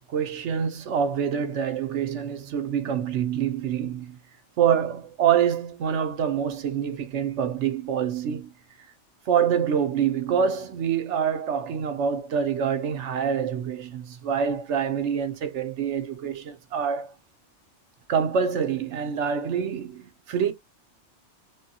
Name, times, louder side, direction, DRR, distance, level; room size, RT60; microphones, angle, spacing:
voice 1, 0.1-4.2 4.6-8.5 9.3-17.1 18.1-20.5, right 8 dB, 85° right, 1.1 m, -26 dB
3.4 x 2.2 x 2.8 m
omnidirectional pair, 1.2 m